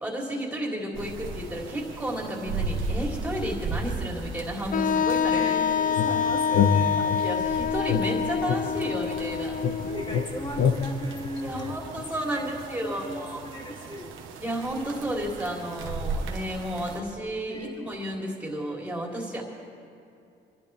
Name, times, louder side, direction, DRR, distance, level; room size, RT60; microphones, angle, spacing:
voice 1, 0.0-5.5 7.0-9.6 11.4-13.4 14.4-19.4, equal, 5° right, -2 dB, 3.5 m, -32 dB
sound 1, 0.9-17.0, right 3 dB, 85° right, 1.3 m, -37 dB
Wind instrument woodwind instrument, 4.7-10.5, left 7 dB, 45° left, 0.5 m, -26 dB
voice 2, 5.3-7.0 9.8-11.8 12.2-14.2 17.5-18.0, equal, 25° left, -2 dB, 2.9 m, -37 dB
sound 2, 6.0-7.4 7.9-9.3 9.6-12.2, left 6 dB, 70° left, 0.9 m, -27 dB
26.0 x 11.0 x 3.5 m, 2.5 s
cardioid pair, 90°, 20 cm